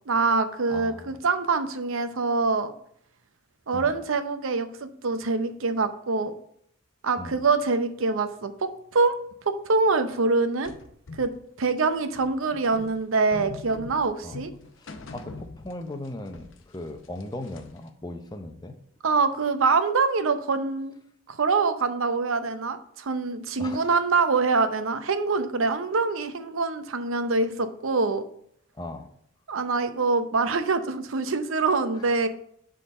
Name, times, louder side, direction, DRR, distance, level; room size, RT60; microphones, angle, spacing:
voice 1, 0.1-2.7 3.7-6.3 7.0-9.2 9.4-10.7 11.2-11.3 11.6-14.5 19.0-20.9 21.3-28.2 29.5-32.3, right 4 dB, 90° right, 10 dB, 0.7 m, -25 dB
voice 2, 0.7-1.1 3.7-4.0 7.2-7.4 14.2-14.4 14.8-18.8 23.6-23.9 28.8-29.1 31.9-32.0, left 1 dB, 20° left, 6 dB, 0.7 m, -38 dB
sound 1, 10.6-16.1 16.3-17.9, left 3 dB, 70° left, 0.7 m, -43 dB
6.6 x 3.8 x 5.4 m, 0.66 s
head